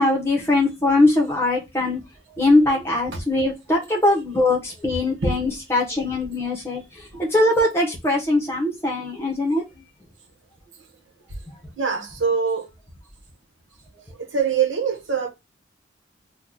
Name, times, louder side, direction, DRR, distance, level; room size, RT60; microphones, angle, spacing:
voice 1, 0.0-2.0 2.4-9.6, left 2 dB, 15° left, 0.9 m, -21 dB
voice 2, 11.8-12.7 14.2-15.3, right 5 dB, 85° right, 1.0 m, -23 dB
2.8 x 2.3 x 3.6 m
head